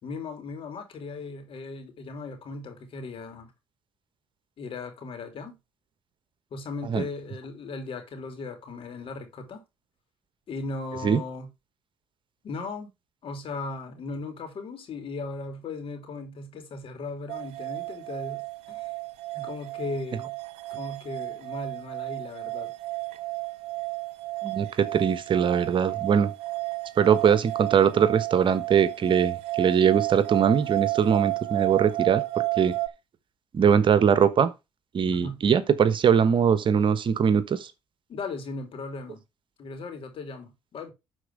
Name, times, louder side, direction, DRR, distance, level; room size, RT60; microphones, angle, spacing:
voice 1, 0.0-3.5 4.6-5.6 6.5-9.6 10.5-11.5 12.4-12.9 13.2-18.9 19.4-20.3 20.8-22.7 35.1-35.4 38.1-39.2 39.6-40.9, left 3 dB, 60° left, 3.2 m, -37 dB
sound 1, 17.3-32.9, right 23 dB, 80° right, 0.8 m, -32 dB
voice 2, 24.4-26.3 27.0-32.2 32.6-32.7 33.5-34.5 34.9-37.7, right 7 dB, 50° right, 1.2 m, -22 dB
11.5 x 4.5 x 4.8 m
supercardioid pair, 65°, 11 cm